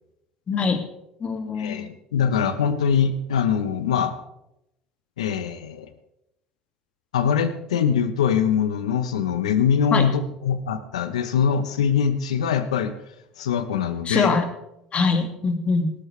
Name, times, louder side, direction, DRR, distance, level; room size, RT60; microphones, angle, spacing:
voice 1, 0.5-0.8 1.2-1.9 9.9-10.1 14.1-14.5 14.9-15.9, left 4 dB, 40° left, 6 dB, 2.2 m, -23 dB
voice 2, 1.6-4.1 5.2-5.9 7.1-12.9 13.4-14.3, left 7 dB, 85° left, 12 dB, 1.0 m, -23 dB
18.5 x 13.0 x 3.4 m, 0.85 s
hypercardioid pair, 70°, 3 cm